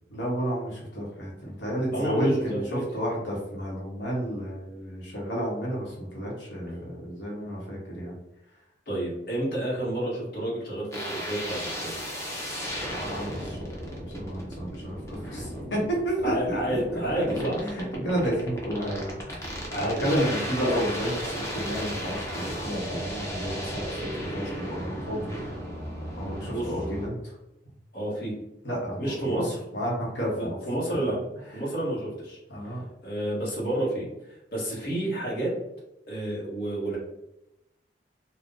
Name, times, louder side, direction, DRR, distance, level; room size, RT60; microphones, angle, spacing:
voice 1, 0.1-8.1 12.6-13.8 14.1-25.3 26.2-27.4 28.6-29.5 29.7-30.5 31.1-31.2 32.5-32.9, equal, 80° left, -5 dB, 1.0 m, -31 dB
voice 2, 1.9-2.8 8.9-11.9 16.2-17.6 19.7-20.2 20.6-20.7 26.5-26.7 27.9-28.3 29.0-29.6 30.3-31.2 31.5-32.4 33.0-35.5 36.1-37.0, right 1 dB, 60° left, -6 dB, 1.1 m, -30 dB
sound 1, 10.9-27.1, equal, 15° left, 0.7 m, -35 dB
2.6 x 2.2 x 3.6 m, 0.91 s
head